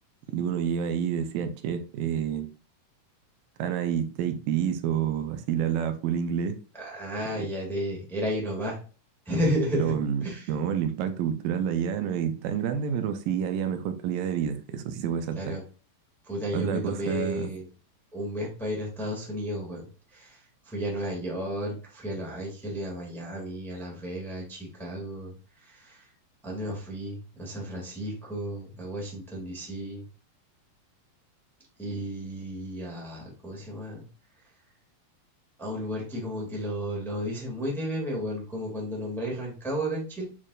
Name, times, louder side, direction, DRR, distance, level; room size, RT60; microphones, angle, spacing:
voice 1, 0.3-2.5 3.6-6.6 9.7-15.4 16.5-17.5, right 8 dB, 80° right, 2.4 m, -28 dB
voice 2, 6.7-8.8 9.2-9.9 10.2-10.5 15.4-15.6 16.2-17.7 18.1-26.1 26.4-30.0 31.8-34.0 34.4-34.5 35.6-40.2, equal, ahead, 1.1 m, -33 dB
9.0 x 4.3 x 2.4 m
omnidirectional pair, 4.0 m